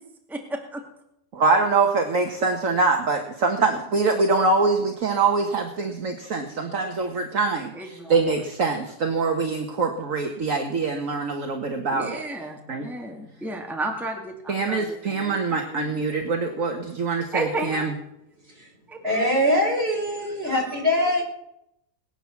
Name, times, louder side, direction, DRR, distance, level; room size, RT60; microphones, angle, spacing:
voice 1, 0.3-0.8 7.7-8.2 11.9-15.4 15.7-16.0 17.3-17.9 18.9-19.3, right 2 dB, ahead, 1 dB, 2.1 m, -33 dB
voice 2, 1.3-12.2 12.7-12.9 14.5-17.9, right 4 dB, 55° right, 4 dB, 1.8 m, -24 dB
voice 3, 18.4-18.7 19.0-21.2, left 1 dB, 35° right, -1 dB, 5.1 m, -23 dB
21.0 x 9.2 x 7.2 m, 0.81 s
omnidirectional pair, 1.7 m